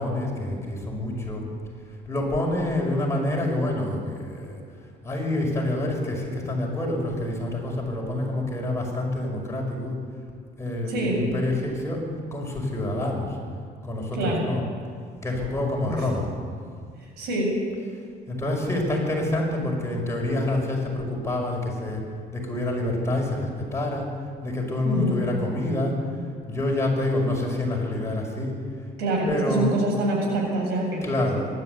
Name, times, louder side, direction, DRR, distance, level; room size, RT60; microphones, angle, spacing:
voice 1, 0.0-1.4 2.0-4.6 5.0-10.0 10.6-13.4 13.8-14.6 15.2-16.3 18.3-22.0 22.3-24.1 24.4-25.9 26.5-28.5 29.3-29.7 31.0-31.4, left 1 dB, 15° left, -1 dB, 5.9 m, -27 dB
voice 2, 10.9-11.3 14.2-14.4 15.8-16.0 17.2-17.6 24.8-25.2 29.0-31.1, right 1 dB, 75° right, -1 dB, 7.8 m, -25 dB
23.0 x 12.0 x 9.5 m, 2.2 s
cardioid pair, 110°, 17 cm